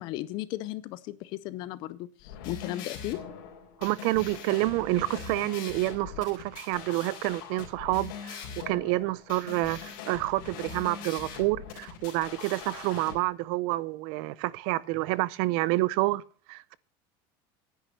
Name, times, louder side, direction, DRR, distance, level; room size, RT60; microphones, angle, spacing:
voice 1, 0.0-3.2, left 15 dB, 45° left, 0.5 m, -36 dB
sound 1, 2.2-13.1, left 7 dB, 75° left, 3.8 m, -42 dB
voice 2, 3.8-16.2 16.5-16.8, right 19 dB, 55° right, 0.5 m, -28 dB
10.0 x 9.2 x 6.6 m
cardioid pair, 175°, 11 cm